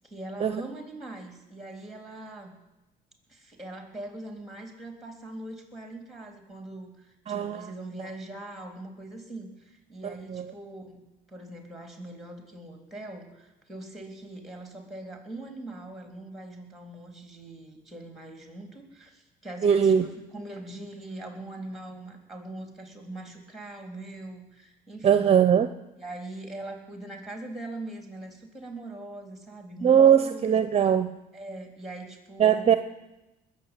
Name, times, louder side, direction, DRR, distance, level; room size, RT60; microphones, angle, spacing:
voice 1, 0.0-2.5 3.3-11.0 11.3-25.4 26.0-30.6 31.3-32.8, right 2 dB, ahead, 4 dB, 3.6 m, -41 dB
voice 2, 7.3-7.7 10.3-10.5 19.6-20.0 25.0-25.7 29.8-31.1 32.4-32.8, right 8 dB, 35° right, 11 dB, 0.7 m, -20 dB
21.0 x 7.2 x 9.0 m, 0.98 s
cardioid pair, 110°, 17 cm